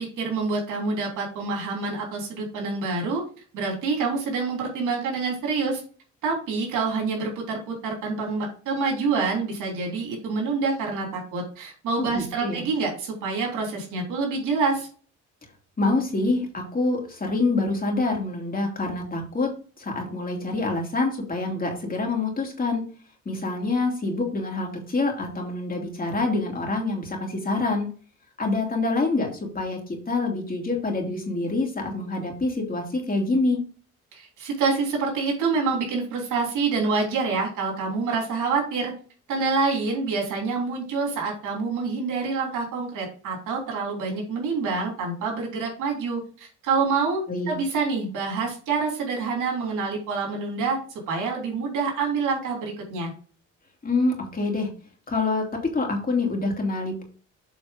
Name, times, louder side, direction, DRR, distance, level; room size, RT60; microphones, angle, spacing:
voice 1, 0.0-3.2 3.5-5.8 6.2-14.9 34.1-38.9 39.3-50.8 51.1-53.1, right 4 dB, 90° right, 0 dB, 3.4 m, -27 dB
voice 2, 12.0-12.6 15.8-22.9 23.2-27.9 28.4-33.6 47.3-47.5 53.8-54.7 55.1-55.5 55.7-57.0, left 3 dB, 30° left, 0 dB, 3.0 m, -26 dB
7.6 x 4.2 x 5.2 m, 0.40 s
cardioid pair, 90°, 30 cm